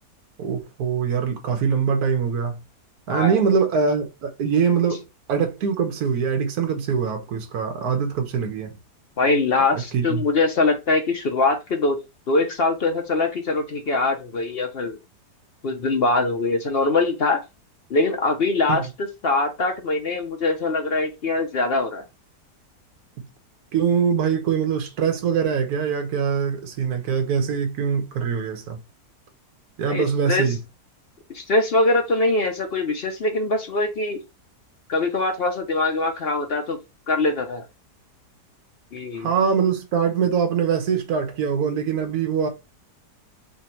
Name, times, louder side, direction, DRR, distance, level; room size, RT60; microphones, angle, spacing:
voice 1, 0.4-2.6 3.1-5.0 5.3-8.8 9.7-10.2 18.7-18.9 23.7-28.8 29.8-30.6 39.2-42.5, right 6 dB, 65° right, 1.3 m, -23 dB
voice 2, 3.1-3.4 9.2-12.0 12.3-15.0 15.6-17.4 17.9-18.9 19.2-22.0 29.9-30.5 31.3-34.2 34.9-36.8 37.1-37.6 38.9-39.3, left 3 dB, 60° left, 0.6 m, -22 dB
3.5 x 2.8 x 4.2 m
omnidirectional pair, 1.8 m